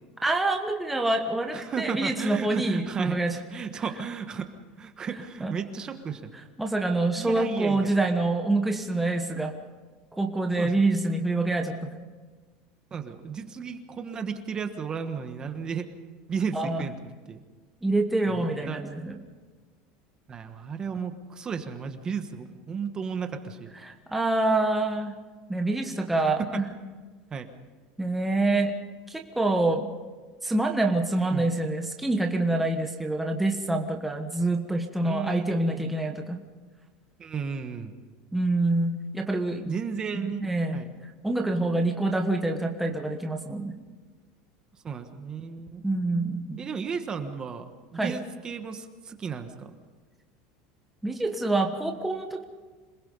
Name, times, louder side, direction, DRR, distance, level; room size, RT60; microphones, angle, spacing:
voice 1, 0.2-3.4 5.4-5.5 6.6-9.6 10.1-12.0 16.5-16.8 17.8-19.2 23.8-25.1 25.5-26.6 28.0-28.7 29.1-29.9 30.4-36.4 38.3-39.8 40.1-43.8 45.8-46.6 47.9-48.2 51.0-52.4, right 2 dB, 5° right, 2 dB, 1.3 m, -26 dB
voice 2, 1.5-3.2 3.5-4.5 4.8-6.3 7.1-7.9 10.6-10.7 12.9-15.9 16.3-17.0 17.3-17.4 18.3-18.8 20.3-23.7 26.2-26.6 27.3-27.5 31.3-31.5 35.0-35.9 37.2-37.9 39.7-40.9 44.8-45.8 46.6-49.7, right 6 dB, 20° right, 7 dB, 1.3 m, -34 dB
27.0 x 20.0 x 5.5 m, 1.4 s
cardioid pair, 160°, 4 cm